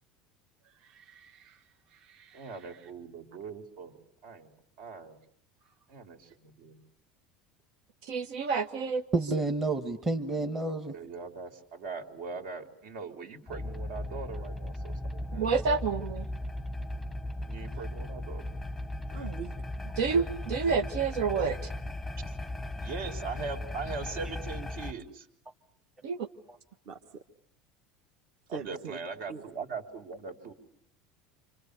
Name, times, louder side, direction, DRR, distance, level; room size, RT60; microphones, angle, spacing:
voice 1, 0.6-2.9 5.6-5.7 19.1-19.5 26.8-27.2 28.5-29.0 29.3-29.4, right 5 dB, 45° right, 4 dB, 1.7 m, -45 dB
voice 2, 2.3-3.9 4.2-4.5 4.8-5.2 5.9-6.8 10.9-14.9 15.3-15.6 17.5-18.4 19.1-19.3 22.2-22.3 22.8-25.3 28.5-30.5, right 4 dB, 65° right, 5 dB, 3.7 m, -40 dB
voice 3, 8.1-9.0 15.4-16.2 20.0-21.6 26.0-26.2, right 5 dB, 85° right, 5 dB, 1.5 m, -28 dB
voice 4, 9.1-10.9 15.1-15.3 26.5-26.6, right 3 dB, 15° right, 5 dB, 1.3 m, -30 dB
sound 1, 13.5-24.9, left 1 dB, ahead, 1.0 m, -37 dB
30.0 x 26.0 x 6.8 m, 0.71 s
cardioid pair, 170°, 2 cm